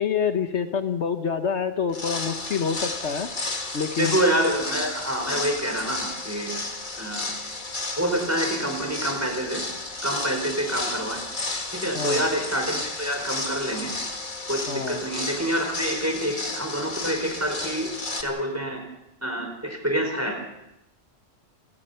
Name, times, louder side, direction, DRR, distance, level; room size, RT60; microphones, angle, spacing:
voice 1, 0.0-3.3 3.7-4.2 11.9-12.3 14.7-15.0, left 6 dB, 65° left, 7 dB, 1.4 m, -27 dB
sound 1, 1.9-18.2, left 2 dB, 40° left, 2.0 m, -32 dB
voice 2, 4.0-6.6 7.0-7.3 8.0-9.6 10.0-11.2 11.7-13.9 14.5-17.9 18.2-18.8 19.2-20.4, right 1 dB, 10° right, 3 dB, 4.7 m, -27 dB
27.5 x 19.0 x 5.7 m, 0.90 s
omnidirectional pair, 1.3 m